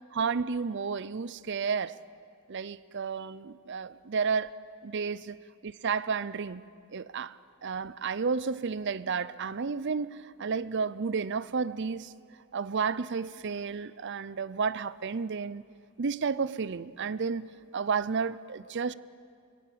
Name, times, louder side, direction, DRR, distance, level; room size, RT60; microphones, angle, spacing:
voice 1, 0.1-1.9 2.5-4.5 4.8-5.4 5.6-6.6 6.9-12.1 12.5-15.6 16.0-17.5 17.7-18.9, right 5 dB, 50° right, 0.5 m, -32 dB
26.0 x 20.5 x 8.7 m
head